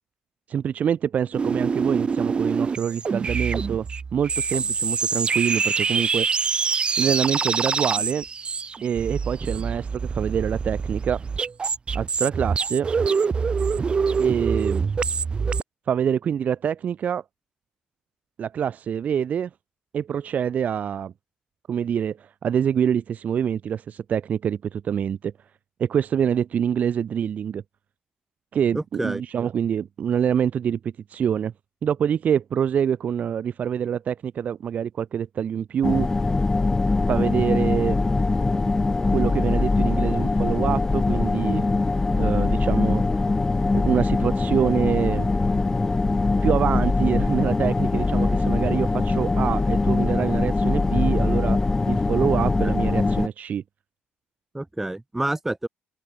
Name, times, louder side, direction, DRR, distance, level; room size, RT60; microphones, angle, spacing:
voice 1, 0.5-3.9 4.1-6.3 7.0-8.2 8.8-11.2 11.9-12.9 14.2-14.9 15.9-17.2 18.4-19.5 19.9-21.1 21.7-25.3 25.8-27.6 28.5-31.5 31.8-36.1 37.1-38.0 39.1-41.6 42.2-43.0 43.7-45.3 46.4-51.6 51.9-53.6, right 8 dB, 45° right, 1.5 m, -25 dB
sound 1, 1.3-15.6, right 5 dB, 30° right, 2.2 m, -25 dB
voice 2, 28.7-29.2 52.4-52.7 54.5-55.7, right 1 dB, 10° right, 3.1 m, -29 dB
sound 2, 35.8-53.3, left 3 dB, 15° left, 1.8 m, -22 dB
cardioid pair, 130°, 4 cm